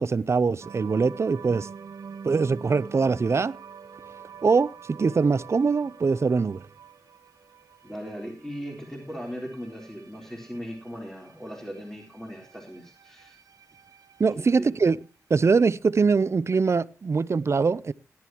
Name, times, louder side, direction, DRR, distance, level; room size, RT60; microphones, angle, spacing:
voice 1, 0.0-1.7 2.2-3.6 4.4-6.6 14.2-15.0 15.3-17.9, right 4 dB, 50° right, 0.6 m, -23 dB
sound 1, 0.6-15.1, right 6 dB, 80° right, 1.0 m, -47 dB
voice 2, 7.8-13.4 14.3-14.7, equal, 5° left, 3.7 m, -38 dB
17.5 x 11.5 x 3.0 m
cardioid pair, 65°, 6 cm